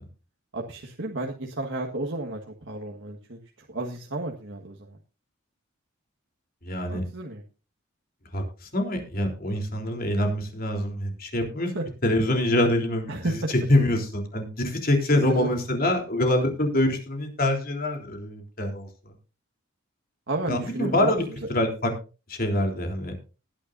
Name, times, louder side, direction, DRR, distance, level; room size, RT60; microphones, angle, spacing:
voice 1, 0.5-3.4 3.7-5.0 6.9-7.4 11.7-11.8 13.1-13.5 15.4-15.5 20.3-21.2, right 2 dB, 60° right, 0 dB, 1.6 m, -32 dB
voice 2, 6.6-7.1 8.3-11.7 12.0-18.9 20.5-21.2 21.5-21.9 22.3-23.2, left 1 dB, 45° left, 3 dB, 3.5 m, -25 dB
19.0 x 10.0 x 2.6 m, 0.33 s
head